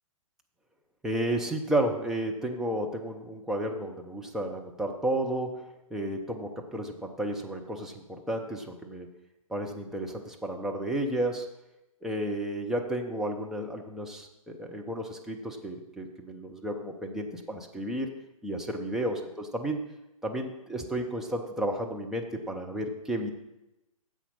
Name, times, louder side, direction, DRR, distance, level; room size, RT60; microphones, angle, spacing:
voice 1, 1.0-5.6 5.9-9.1 9.5-11.4 12.0-18.1 18.4-19.8 20.2-23.3, right 1 dB, ahead, 1 dB, 0.7 m, -32 dB
10.0 x 7.6 x 5.5 m, 0.93 s
figure-of-eight pair, 125°, 18 cm